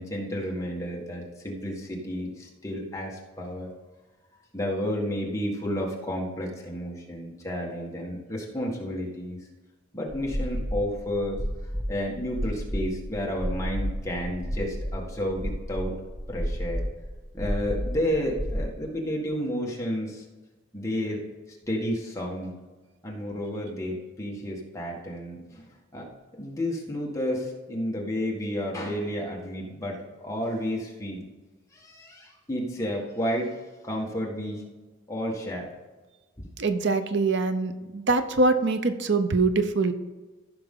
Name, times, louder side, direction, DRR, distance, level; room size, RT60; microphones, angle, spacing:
voice 1, 0.0-3.7 4.5-9.4 9.9-11.4 11.9-16.0 16.3-16.9 17.3-20.2 20.7-21.2 21.7-22.5 23.0-26.1 26.4-31.2 31.7-34.6 35.1-35.7 36.4-36.5, equal, 15° left, -2 dB, 1.7 m, -31 dB
sound 1, 10.1-18.6, equal, 20° right, 1.1 m, -32 dB
voice 2, 36.6-39.9, right 3 dB, 60° right, 9 dB, 0.7 m, -24 dB
14.5 x 6.0 x 3.8 m, 1.2 s
head